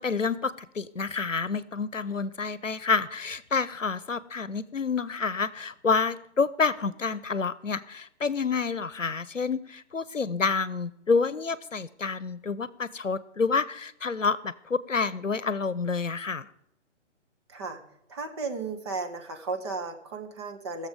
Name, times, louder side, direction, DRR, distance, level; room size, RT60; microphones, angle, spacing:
voice 1, 0.0-16.5, left 4 dB, 90° left, 17 dB, 0.8 m, -28 dB
voice 2, 17.5-17.8 18.1-20.9, right 4 dB, 20° right, 4 dB, 1.0 m, -34 dB
18.5 x 7.2 x 5.1 m, 0.76 s
figure-of-eight pair, 145°, 37 cm